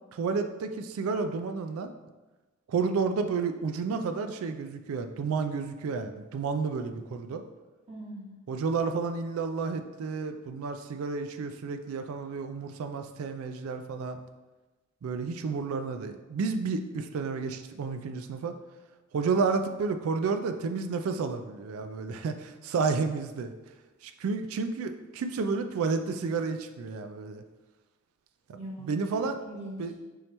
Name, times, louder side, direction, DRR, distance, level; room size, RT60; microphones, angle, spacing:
voice 1, 0.1-1.9 2.7-7.4 8.5-14.2 15.0-18.5 19.1-23.5 24.0-27.4 28.5-28.6 28.8-29.4 29.8-29.9, right 4 dB, 80° right, 7 dB, 0.3 m, -31 dB
voice 2, 7.9-8.4 28.6-29.9, right 1 dB, 30° right, -7 dB, 1.0 m, -42 dB
5.4 x 2.9 x 3.2 m, 1.2 s
head